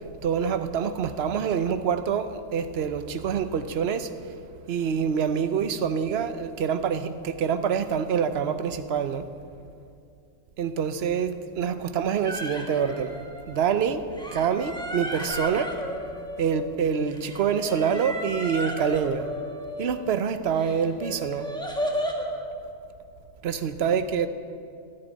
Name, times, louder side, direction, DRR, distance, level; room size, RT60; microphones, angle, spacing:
voice 1, 0.2-4.1 4.7-9.2 10.6-13.1 13.5-14.0 14.3-15.7 16.4-19.3 19.8-21.5 23.4-24.3, right 7 dB, 55° right, 11 dB, 1.0 m, -26 dB
sound 1, 12.2-13.7 14.1-16.8 17.1-20.1 20.6-22.3, equal, 5° left, 1.6 m, -34 dB
13.0 x 10.5 x 9.8 m, 2.5 s
omnidirectional pair, 1.4 m